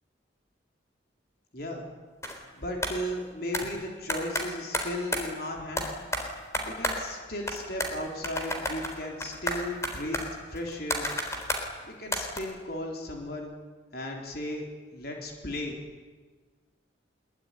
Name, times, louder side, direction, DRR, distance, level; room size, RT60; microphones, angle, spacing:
voice 1, 1.5-1.9 2.3-5.9 6.6-10.2 10.5-11.1 11.9-13.5 13.9-14.7 14.9-15.8, left 1 dB, 50° left, 1 dB, 4.1 m, -35 dB
sound 1, 2.2-2.4 2.8-3.0 3.5-3.7 4.1-5.3 5.8-7.2 7.5-8.0 8.2-11.7 12.1-12.4, left 1 dB, 15° left, 3.8 m, -31 dB
24.0 x 22.0 x 10.0 m, 1.4 s
head